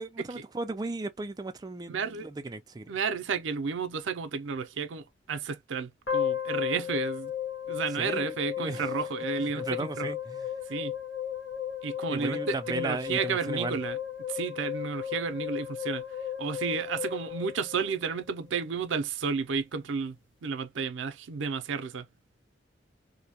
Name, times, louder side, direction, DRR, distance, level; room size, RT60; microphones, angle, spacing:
voice 1, 0.0-3.0 7.9-8.9 9.4-10.5 12.1-13.8, right 3 dB, 20° right, 0.3 m, -36 dB
voice 2, 1.9-2.3 2.9-7.3 7.7-9.7 10.0-10.1 10.7-10.9 11.8-14.0 14.3-16.0 16.4-20.2 20.4-22.1, right 5 dB, 85° right, 0.5 m, -32 dB
sound 1, 6.1-18.3, left 9 dB, 75° left, 1.2 m, -35 dB
2.6 x 2.1 x 2.8 m
head